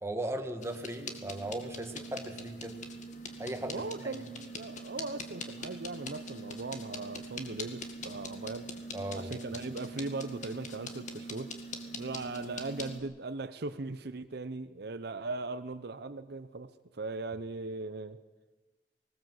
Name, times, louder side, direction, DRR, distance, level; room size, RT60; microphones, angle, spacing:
voice 1, 0.0-2.8 3.4-4.1 8.9-9.3, right 1 dB, 15° right, 5 dB, 1.7 m, -37 dB
sound 1, 0.6-13.0, left 1 dB, 45° left, 2.2 m, -43 dB
voice 2, 3.6-8.7 9.1-11.5 12.0-18.2, right 3 dB, 65° right, 11 dB, 0.8 m, -39 dB
19.5 x 19.5 x 7.9 m, 1.2 s
head